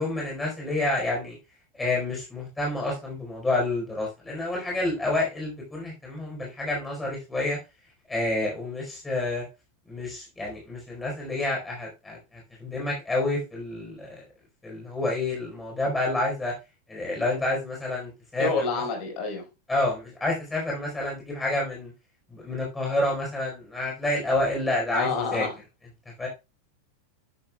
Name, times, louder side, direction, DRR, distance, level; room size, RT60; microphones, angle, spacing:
voice 1, 0.0-1.4 1.7-7.6 8.1-9.4 9.9-14.2 14.6-16.5 16.9-18.8 19.7-21.9 22.3-25.4 26.2-26.3, left 2 dB, 10° left, 4.5 m, -29 dB
voice 2, 18.4-19.4 24.9-25.5, left 4 dB, 40° left, 5.0 m, -28 dB
11.0 x 10.5 x 2.4 m
figure-of-eight pair, 90°, 0 cm